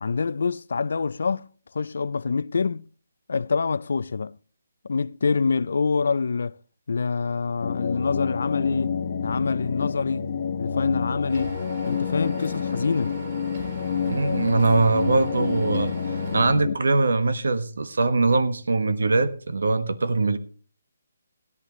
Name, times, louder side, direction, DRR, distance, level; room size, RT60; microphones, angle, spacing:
voice 1, 0.0-1.5 1.7-2.9 3.3-4.4 4.8-6.6 6.9-9.0 9.2-10.3 10.6-11.6 11.9-13.2, left 4 dB, 70° left, 0.4 m, -26 dB
sound 1, 7.6-16.8, left 6 dB, 45° left, 1.3 m, -28 dB
sound 2, 11.3-16.5, right 4 dB, 40° right, 4.6 m, -39 dB
voice 2, 14.1-15.9 16.3-20.4, right 3 dB, 80° right, 1.3 m, -22 dB
16.5 x 11.0 x 3.1 m
hypercardioid pair, 165°, 0 cm